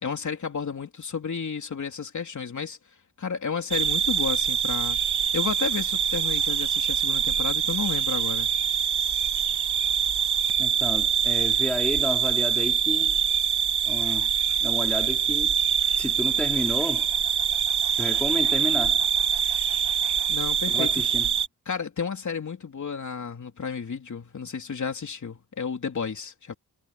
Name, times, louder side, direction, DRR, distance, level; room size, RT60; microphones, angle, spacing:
voice 1, 0.0-2.8 3.2-5.0 5.3-8.5 20.3-21.0 21.7-26.5, left 6 dB, 45° left, 3.4 m, -32 dB
sound 1, 3.7-21.5, right 8 dB, 70° right, 1.6 m, -24 dB
voice 2, 10.6-13.2 13.8-14.3 14.6-15.5 15.9-17.1 18.0-19.1 20.7-21.3, left 1 dB, 5° left, 2.7 m, -31 dB
wide cardioid pair, 140°, 41 cm